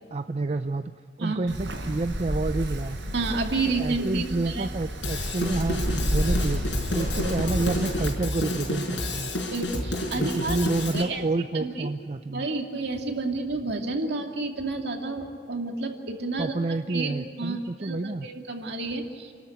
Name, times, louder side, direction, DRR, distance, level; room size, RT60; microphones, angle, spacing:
voice 1, 0.1-0.9 1.2-3.0 3.8-5.8 6.1-6.6 6.9-9.3 10.1-12.5 16.4-18.3, right 2 dB, 35° right, 9 dB, 0.5 m, -29 dB
Wind, 1.5-8.1, equal, 80° right, 4.9 m, -30 dB
voice 2, 3.1-4.7 9.5-10.6 10.9-11.2 11.5-11.9 12.3-19.3, right 3 dB, 65° right, 3 dB, 2.6 m, -30 dB
Drum kit / Drum, 5.0-11.0, left 1 dB, 80° left, 5.3 m, -30 dB
28.5 x 13.5 x 9.4 m, 2.1 s
head